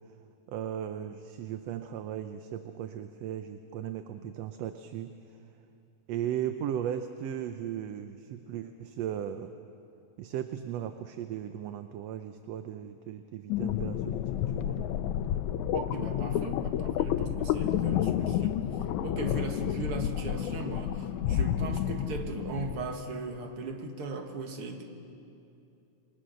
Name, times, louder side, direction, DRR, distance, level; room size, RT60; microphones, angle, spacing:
voice 1, 0.5-5.1 6.1-9.5 10.2-14.8, right 10 dB, 70° right, 8 dB, 1.8 m, -37 dB
sound 1, 13.5-22.9, left 10 dB, 85° left, 2.1 m, -30 dB
voice 2, 15.7-18.6 19.0-24.8, right 3 dB, 50° right, 4 dB, 2.4 m, -38 dB
28.0 x 23.0 x 6.4 m, 2.7 s
omnidirectional pair, 3.3 m